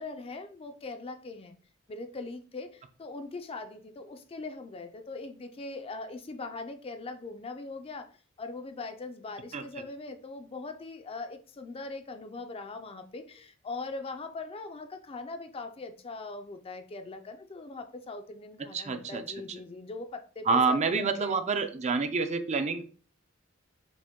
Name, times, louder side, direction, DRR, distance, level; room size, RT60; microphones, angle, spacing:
voice 1, 0.0-1.6 1.9-8.1 8.4-21.4, left 3 dB, 25° left, 0.4 m, -41 dB
voice 2, 18.7-19.2 20.5-22.8, right 4 dB, 35° right, 0.4 m, -27 dB
5.0 x 2.2 x 3.6 m
head